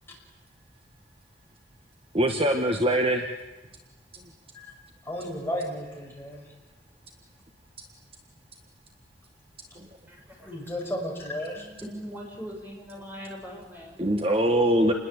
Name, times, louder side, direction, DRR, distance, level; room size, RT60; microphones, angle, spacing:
voice 1, 2.1-3.3 14.0-14.9, right 1 dB, 30° right, 4 dB, 1.6 m, -22 dB
voice 2, 5.0-6.5 10.4-11.7, equal, 15° left, -1 dB, 6.0 m, -33 dB
voice 3, 10.1-10.6 11.8-14.3, equal, 10° right, -1 dB, 6.5 m, -41 dB
28.5 x 21.0 x 8.2 m, 1.1 s
head